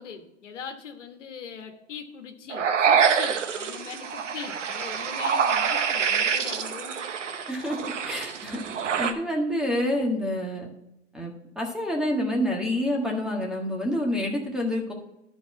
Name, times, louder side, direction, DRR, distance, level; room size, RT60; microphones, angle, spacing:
voice 1, 0.0-7.0, left 6 dB, 80° left, 6 dB, 1.3 m, -41 dB
sound 1, 2.5-9.1, right 7 dB, 85° right, 1.0 m, -26 dB
voice 2, 7.5-8.6 9.0-10.7 11.1-14.9, left 1 dB, ahead, 0 dB, 1.6 m, -28 dB
11.0 x 4.7 x 5.9 m, 0.87 s
hypercardioid pair, 110°, 35 cm